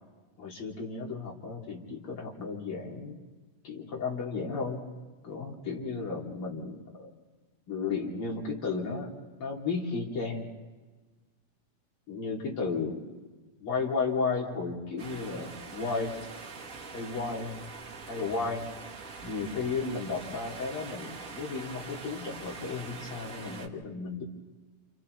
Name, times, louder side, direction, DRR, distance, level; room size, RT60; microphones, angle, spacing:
voice 1, 0.4-3.2 3.6-4.8 5.2-7.1 7.7-9.1 9.4-10.5 12.1-13.0 13.6-16.1 16.9-17.6 18.1-18.7 19.2-24.2, left 4 dB, 40° left, -3 dB, 3.6 m, -34 dB
sound 1, 15.0-23.7, right 4 dB, 55° right, 0.9 m, -44 dB
29.5 x 29.0 x 3.3 m, 1.3 s
omnidirectional pair, 4.1 m